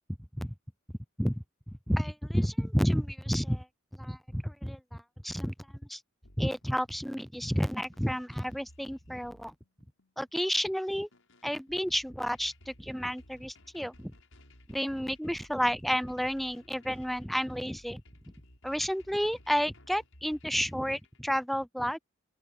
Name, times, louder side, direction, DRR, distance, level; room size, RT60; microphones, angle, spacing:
voice 1, 1.9-3.7 4.0-5.5 5.9-6.0 6.4-9.5 10.2-11.1 11.4-14.1 14.7-18.0 18.6-22.0, equal, ahead, 0.3 m, -31 dB
sound 1, 6.2-21.2, left 1 dB, 80° left, 7.5 m, -58 dB
open air
head